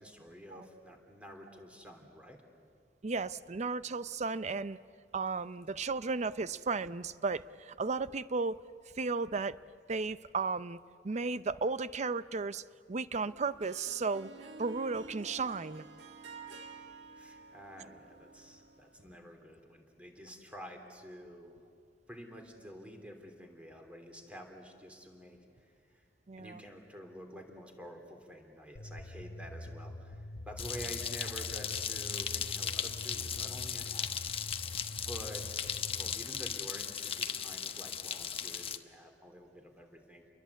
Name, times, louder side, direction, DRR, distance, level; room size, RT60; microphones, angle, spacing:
voice 1, 0.0-2.4 17.1-21.6 22.1-26.0 26.4-34.4 35.0-35.5 35.9-40.2, equal, 5° right, 3.1 m, -49 dB
voice 2, 3.0-4.8 5.1-8.6 9.0-9.6 9.9-10.8 11.0-14.3 14.6-15.9 26.3-26.6, right 4 dB, 40° right, 0.6 m, -34 dB
Harp, 13.2-19.0, right 3 dB, 90° right, 1.5 m, -50 dB
sound 1, 28.8-36.2, left 1 dB, 80° left, 1.1 m, -45 dB
sound 2, 30.6-38.8, left 8 dB, 35° left, 1.0 m, -37 dB
29.5 x 22.5 x 8.3 m
head